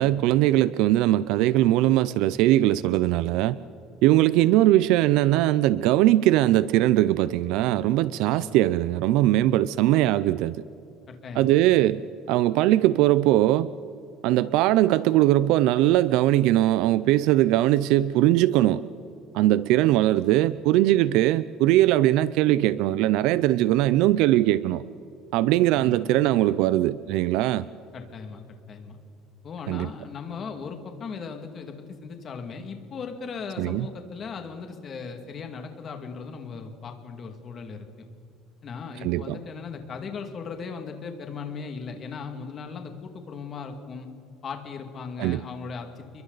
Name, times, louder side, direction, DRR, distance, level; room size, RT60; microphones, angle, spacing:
voice 1, 0.0-3.6 4.0-10.6 11.4-12.0 12.3-13.7 14.2-18.8 19.3-24.8 25.3-27.6 29.7-29.9 33.6-33.9 39.0-39.4 45.2-45.4, right 14 dB, 70° right, 17 dB, 0.4 m, -20 dB
voice 2, 11.1-11.6 25.7-26.0 27.9-29.0 29.4-38.1 38.6-44.1 44.4-46.2, left 5 dB, 30° left, 5 dB, 2.2 m, -38 dB
29.5 x 22.5 x 4.0 m, 2.6 s
cardioid pair, 155°, 0 cm